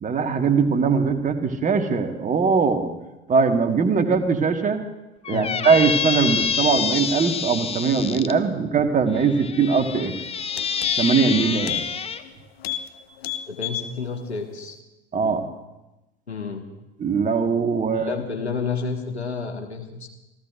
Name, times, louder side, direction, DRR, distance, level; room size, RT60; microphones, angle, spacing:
voice 1, 0.0-2.9 3.3-4.8 5.3-10.1 11.0-11.8 15.1-15.5 17.0-18.2, right 5 dB, 25° right, 6 dB, 1.5 m, -21 dB
Squeak, 5.2-8.3 9.1-12.2, left 7 dB, 20° left, 0.7 m, -27 dB
sound 1, 10.0-10.1 10.4-11.3 11.6-11.9 12.2-12.3 12.6-12.9 13.2-13.9 14.3-14.4, left 11 dB, 70° left, 0.9 m, -30 dB
voice 2, 13.5-14.8 16.3-16.7 17.9-20.1, left 5 dB, 85° left, 4 dB, 1.5 m, -30 dB
27.0 x 14.5 x 2.5 m, 1.0 s
figure-of-eight pair, 70°, 32 cm